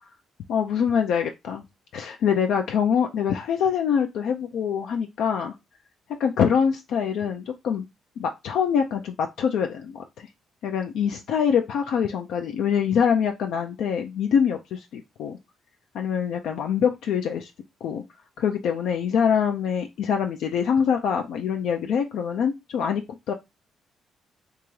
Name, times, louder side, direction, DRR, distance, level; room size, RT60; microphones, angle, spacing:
voice 1, 0.5-1.6 1.9-5.5 6.2-7.9 8.2-10.3 10.6-15.4 15.9-17.5 17.8-18.0 18.4-23.0 23.3-23.4, left 7 dB, 80° left, 4 dB, 0.4 m, -24 dB
3.4 x 2.9 x 3.1 m, 0.22 s
cardioid pair, 90°, 0 cm